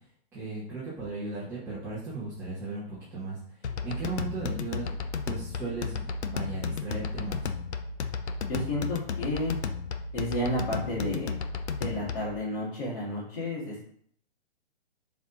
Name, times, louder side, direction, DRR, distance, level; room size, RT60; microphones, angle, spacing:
voice 1, 0.3-3.4 3.8-4.9 5.3-7.5, right 3 dB, 5° right, -10 dB, 1.3 m, -36 dB
sound 1, 3.6-12.4, left 5 dB, 75° left, 0.9 m, -33 dB
voice 2, 8.5-9.5 10.1-11.4 11.8-13.8, left 1 dB, 35° left, -9 dB, 2.2 m, -31 dB
7.2 x 4.3 x 4.0 m, 0.65 s
hypercardioid pair, 165°, 33 cm